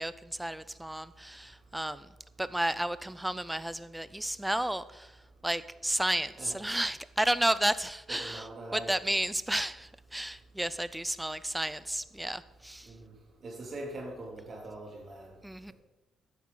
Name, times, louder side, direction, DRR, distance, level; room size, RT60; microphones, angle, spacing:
voice 1, 0.0-2.1 2.4-5.2 5.4-12.9 15.4-15.7, right 1 dB, 5° right, 15 dB, 0.5 m, -32 dB
voice 2, 8.1-8.9 12.9-13.1 13.4-15.3, right 1 dB, 50° right, -1 dB, 3.2 m, -42 dB
13.0 x 9.5 x 3.9 m, 1.0 s
cardioid pair, 90°, 0 cm